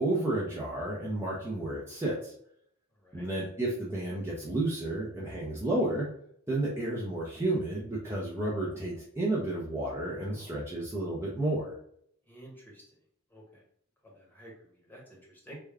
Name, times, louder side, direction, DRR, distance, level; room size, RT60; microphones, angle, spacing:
voice 1, 0.0-2.3 3.1-6.1 6.5-11.8, right 2 dB, 15° right, -5 dB, 0.6 m, -31 dB
voice 2, 12.3-12.8 13.3-13.6 14.0-15.6, right 1 dB, 10° left, -3 dB, 1.0 m, -51 dB
3.4 x 2.2 x 3.4 m, 0.67 s
head